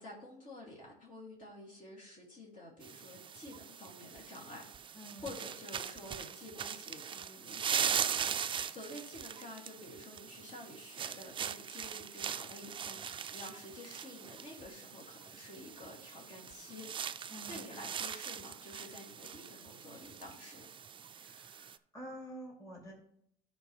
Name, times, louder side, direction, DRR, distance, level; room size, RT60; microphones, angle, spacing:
voice 1, 0.0-4.7 5.2-17.2 17.5-20.7, left 1 dB, 50° left, -5 dB, 3.0 m, -50 dB
sound 1, 2.8-21.8, right 8 dB, 30° right, 0.4 m, -40 dB
voice 2, 4.9-5.3 17.3-17.7 21.1-22.9, right 1 dB, 20° left, -3 dB, 3.4 m, -49 dB
13.5 x 4.7 x 3.4 m, 0.68 s
cardioid pair, 110°, 17 cm